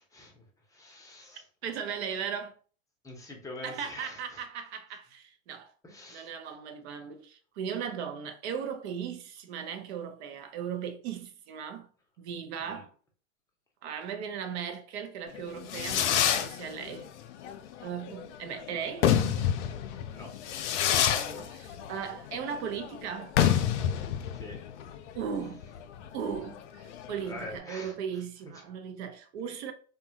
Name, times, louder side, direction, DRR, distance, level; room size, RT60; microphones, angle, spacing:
voice 1, 0.0-1.5 3.0-4.4 5.8-6.3 12.6-12.8 20.1-20.3 24.3-24.6 27.2-28.6, left 2 dB, 10° left, 0.7 m, -45 dB
voice 2, 1.6-2.5 3.6-5.7 6.1-11.9 12.2-12.9 13.8-17.1 17.8-19.1 20.9-23.4 25.1-25.6 26.1-29.7, right 7 dB, 60° right, 0.6 m, -37 dB
Fireworks, 15.3-27.6, left 9 dB, 65° left, 0.5 m, -29 dB
2.7 x 2.3 x 2.7 m
hypercardioid pair, 115°, 38 cm